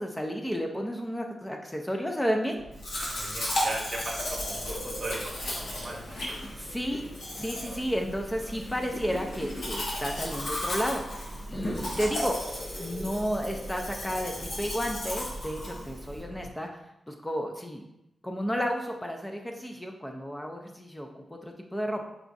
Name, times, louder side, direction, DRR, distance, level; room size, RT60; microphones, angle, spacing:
voice 1, 0.0-2.6 6.5-7.1 7.3-12.4 12.8-16.7 17.1-17.8 18.2-22.0, equal, 10° left, 2 dB, 0.3 m, -32 dB
sound 1, 2.5-16.5, right 1 dB, 75° right, 0.6 m, -44 dB
Domestic sounds home sounds, 2.8-16.2, left 1 dB, 80° left, 1.0 m, -35 dB
voice 2, 3.0-6.2, right 2 dB, 50° right, -1 dB, 0.8 m, -38 dB
sound 2, 5.6-12.2, equal, 40° left, 0.8 m, -44 dB
4.7 x 2.3 x 2.5 m, 0.84 s
wide cardioid pair, 125°, 0 cm